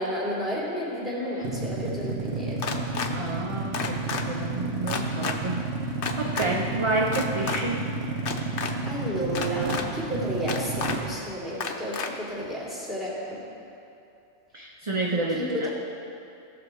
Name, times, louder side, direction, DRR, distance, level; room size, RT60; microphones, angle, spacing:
voice 1, 0.0-2.8 8.9-13.4 15.3-15.7, equal, ahead, -8 dB, 3.0 m, -32 dB
sound 1, 1.4-11.2, right 3 dB, 65° right, 1.1 m, -31 dB
sound 2, 2.6-3.1 3.7-4.2 4.9-5.3 6.0-6.5 7.1-7.6 8.2-8.7 9.3-9.8 10.5-10.9 11.6-12.1, left 5 dB, 55° left, 0.9 m, -30 dB
voice 2, 3.1-5.8 6.2-7.9 14.5-15.7, right 2 dB, 30° right, -1 dB, 0.6 m, -29 dB
17.0 x 7.0 x 4.6 m, 2.6 s
omnidirectional pair, 1.2 m